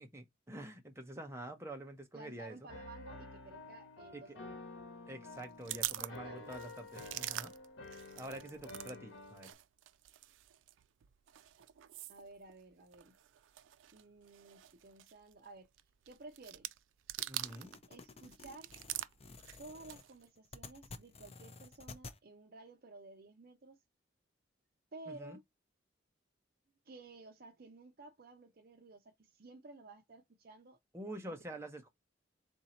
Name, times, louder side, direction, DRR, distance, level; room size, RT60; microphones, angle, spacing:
voice 1, 0.0-2.6 4.1-4.2 5.1-7.5 8.2-9.5 17.3-17.7 25.1-25.4 30.9-31.9, right 1 dB, 15° right, 0.8 m, -47 dB
voice 2, 2.1-4.7 6.0-6.6 12.1-13.1 13.9-15.7 16.1-16.8 17.9-18.7 19.6-23.8 24.9-25.4 26.8-30.8 31.3-31.4, right 2 dB, 50° right, 0.7 m, -54 dB
Piano, 2.7-9.5, left 2 dB, 90° left, 1.0 m, -50 dB
sound 1, 5.3-9.0 9.2-17.8 18.1-20.3, right 15 dB, 85° right, 0.3 m, -45 dB
sound 2, 17.2-22.2, left 3 dB, 30° left, 0.5 m, -52 dB
3.8 x 2.7 x 4.2 m
head